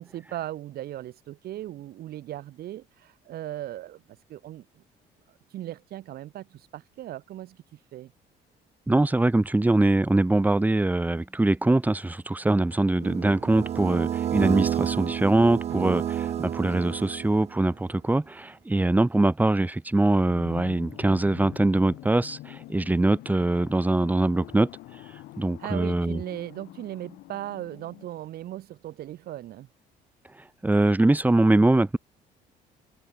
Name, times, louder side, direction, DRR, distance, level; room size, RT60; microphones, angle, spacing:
voice 1, 0.0-4.6 5.5-8.1 15.7-15.9 25.6-29.7, right 13 dB, 65° right, 2.1 m, -38 dB
voice 2, 8.9-24.7 25.4-26.2 30.6-32.0, right 2 dB, 10° right, 1.6 m, -23 dB
sound 1, 13.0-17.6, right 10 dB, 40° right, 0.5 m, -30 dB
sound 2, 20.3-28.1, left 17 dB, 85° left, 7.6 m, -45 dB
cardioid pair, 110°, 17 cm